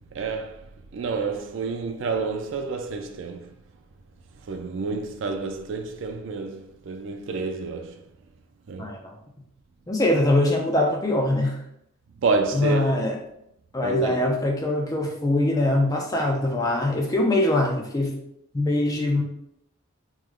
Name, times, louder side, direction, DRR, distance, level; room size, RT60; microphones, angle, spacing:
voice 1, 0.1-0.6 0.9-3.4 4.5-8.0 8.7-8.9 12.2-12.8 13.8-14.2, right 4 dB, 60° right, 0.4 m, -29 dB
voice 2, 8.8-9.1 9.9-11.6 12.5-13.2 13.7-18.2 18.5-19.2, left 1 dB, 15° left, 0.4 m, -23 dB
3.1 x 2.1 x 3.6 m
head